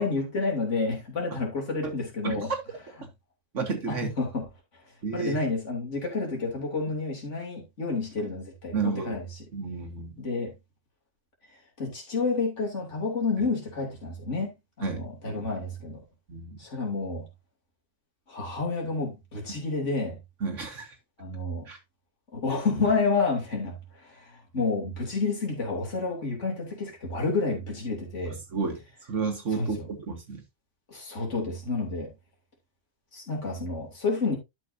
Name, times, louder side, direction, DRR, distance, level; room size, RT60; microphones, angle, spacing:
voice 1, 0.0-2.5 3.9-4.5 5.1-9.2 10.2-10.5 11.8-16.0 16.6-17.3 18.3-20.2 21.2-21.7 22.3-28.4 29.5-29.9 30.9-32.1 33.1-34.4, left 3 dB, 65° left, 3.4 m, -30 dB
voice 2, 2.2-2.6 3.5-4.1 5.0-5.3 8.7-9.2 9.5-10.2 13.4-13.5 14.8-15.5 16.3-16.6 20.4-21.0 21.7-21.8 28.5-30.4, right 4 dB, 70° right, 1.8 m, -31 dB
11.5 x 6.3 x 2.7 m
omnidirectional pair, 1.3 m